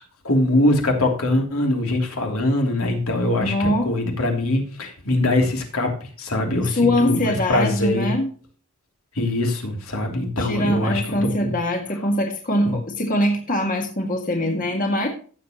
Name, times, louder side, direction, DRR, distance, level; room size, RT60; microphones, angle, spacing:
voice 1, 0.2-8.1 9.1-11.5 12.6-12.8, left 1 dB, 75° left, 2 dB, 3.1 m, -22 dB
voice 2, 3.4-3.9 6.6-8.3 10.4-15.1, left 1 dB, 40° left, 2 dB, 1.8 m, -22 dB
16.0 x 7.5 x 3.0 m, 0.40 s
head